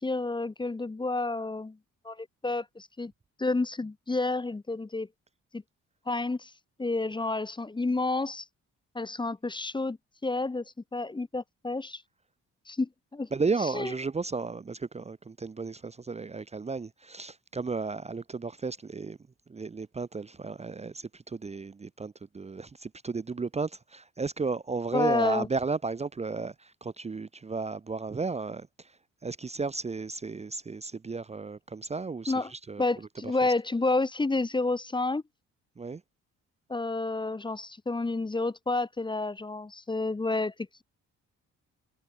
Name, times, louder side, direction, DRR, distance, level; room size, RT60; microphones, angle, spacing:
voice 1, 0.0-1.8 2.0-3.1 3.4-5.1 5.5-5.6 6.1-6.5 6.8-8.4 8.9-10.0 10.2-10.6 10.9-12.0 12.7-13.3 13.7-13.9 24.9-25.5 32.3-32.5 32.8-35.2 36.7-40.5, left 2 dB, 15° left, 0.9 m, -30 dB
voice 2, 13.3-19.2 19.5-33.1 35.8-36.0, right 4 dB, 20° right, 0.7 m, -34 dB
cardioid pair, 90°, 30 cm